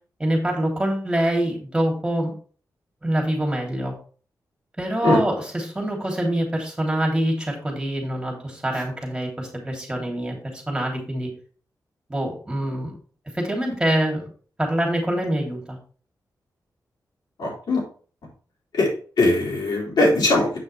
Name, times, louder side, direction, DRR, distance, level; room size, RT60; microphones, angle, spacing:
voice 1, 0.2-2.3 3.0-3.9 4.8-11.3 12.1-12.9 13.3-14.3 14.6-15.8, right 1 dB, 10° right, 0 dB, 3.4 m, -25 dB
voice 2, 17.4-17.8 18.7-18.9 19.2-20.6, left 2 dB, 75° left, -3 dB, 4.0 m, -20 dB
8.0 x 6.3 x 3.4 m, 0.41 s
wide cardioid pair, 110°, 7 cm